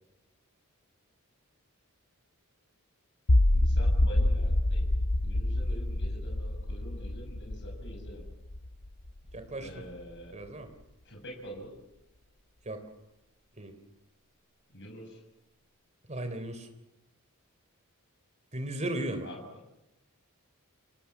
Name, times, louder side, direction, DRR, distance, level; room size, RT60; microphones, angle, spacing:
sound 1, 3.3-9.4, left 1 dB, 80° left, 1.4 m, -27 dB
voice 1, 3.5-4.9 5.2-8.2 9.6-10.4 11.0-11.7 14.7-15.2 19.2-19.6, equal, 55° left, 2 dB, 5.9 m, -46 dB
voice 2, 9.3-9.8 10.3-10.7 12.6-12.8 13.6-13.7 16.1-16.7 18.5-19.3, right 1 dB, 30° right, 8 dB, 3.5 m, -36 dB
30.0 x 25.0 x 7.2 m, 0.95 s
head